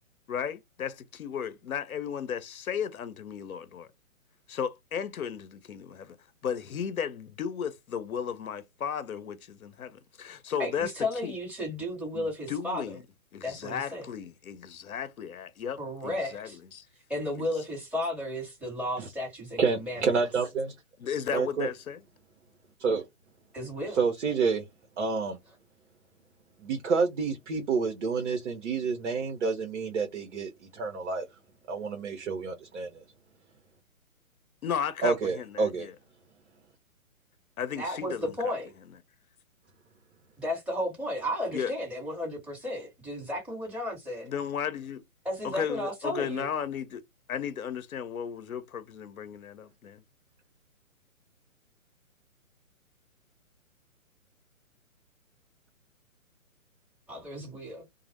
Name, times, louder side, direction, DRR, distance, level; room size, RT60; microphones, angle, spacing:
voice 1, 0.3-3.9 4.5-6.2 6.4-10.9 11.2-11.3 12.1-13.0 13.3-16.9 17.4-17.5 21.0-22.0 34.6-35.9 37.6-38.3 41.5-41.7 44.2-45.0 45.4-47.0 47.3-50.0, left 8 dB, 80° left, 0.7 m, -35 dB
voice 2, 10.6-13.0 13.4-14.1 15.8-16.6 17.1-20.1 23.5-24.0 37.8-38.7 40.4-44.3 45.2-46.5 57.1-57.8, left 1 dB, 5° right, 1.3 m, -34 dB
voice 3, 19.6-20.7 21.3-21.7 22.8-23.0 23.9-24.6 25.0-25.4 26.6-31.3 31.7-33.0 35.0-35.9, right 5 dB, 55° right, 0.8 m, -28 dB
2.3 x 2.0 x 2.9 m
hypercardioid pair, 140°, 42 cm